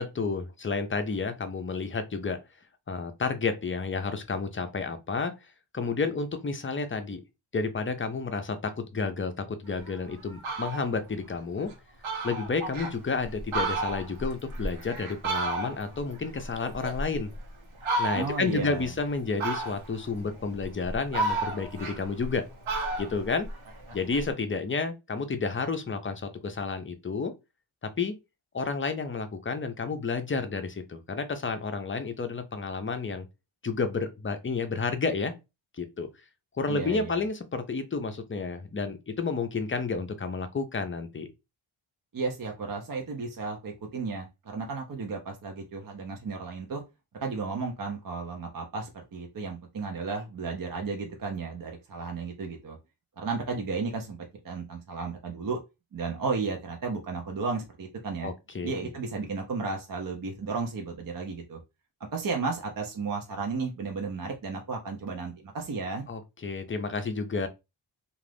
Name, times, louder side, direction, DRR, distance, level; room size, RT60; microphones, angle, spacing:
voice 1, 0.0-2.4 2.9-5.3 5.7-7.2 7.5-11.7 12.2-17.3 18.0-22.5 23.0-23.5 23.9-27.3 28.0-28.2 28.5-33.3 33.6-35.3 35.8-36.1 36.6-41.3 58.2-58.9 66.1-67.5, left 4 dB, 25° left, 0.5 m, -31 dB
Fowl, 9.8-9.9 10.3-10.9 11.4-11.5 11.7-11.8 12.0-12.9 13.4-16.0 16.3-17.4 17.8-18.5 19.4-20.0 20.6-22.4 22.7-24.2, right 2 dB, 75° right, 1.0 m, -32 dB
voice 2, 18.1-18.9 36.7-37.2 42.1-46.8 47.2-52.8 53.2-55.6 55.9-58.3 58.6-61.6 62.1-66.0, right 4 dB, 45° right, 0.6 m, -33 dB
2.4 x 2.4 x 3.3 m
wide cardioid pair, 75°, 49 cm